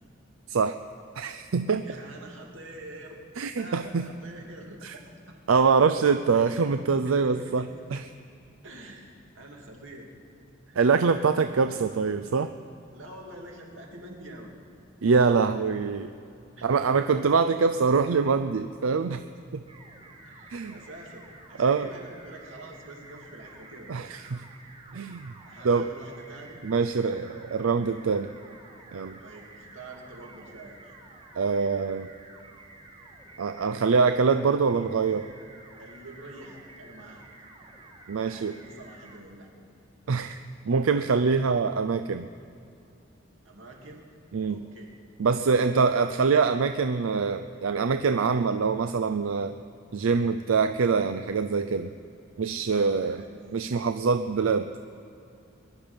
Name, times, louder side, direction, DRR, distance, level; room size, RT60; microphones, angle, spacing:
voice 1, 1.2-1.9 3.4-4.1 4.8-4.9 5.5-8.0 10.8-12.5 15.0-16.1 16.6-19.2 19.5-19.6 20.5-20.7 21.6-21.9 23.9-24.5 24.9-25.3 25.6-25.9 26.6-28.3 28.9-29.2 31.4-32.1 33.4-35.3 38.1-38.6 40.1-40.4 40.7-42.3 44.3-44.6 45.2-49.6 49.9-51.9 52.4-53.2 53.5-54.7, right 5 dB, 90° right, 9 dB, 0.5 m, -24 dB
voice 2, 1.8-3.2 3.6-5.4 6.3-6.7 7.0-8.0 8.6-9.1 9.3-10.1 10.7-10.8 11.3-12.0 12.9-14.5 16.6-17.3 20.2-23.9 25.4-26.6 29.2-30.9 35.8-37.5 38.2-39.6 43.4-44.1 44.5-44.9 45.4-45.7 52.7-53.8, right 1 dB, 70° right, 0 dB, 2.8 m, -46 dB
sound 1, 19.7-39.2, right 2 dB, 25° right, 1.7 m, -51 dB
22.5 x 11.5 x 5.2 m, 2.6 s
head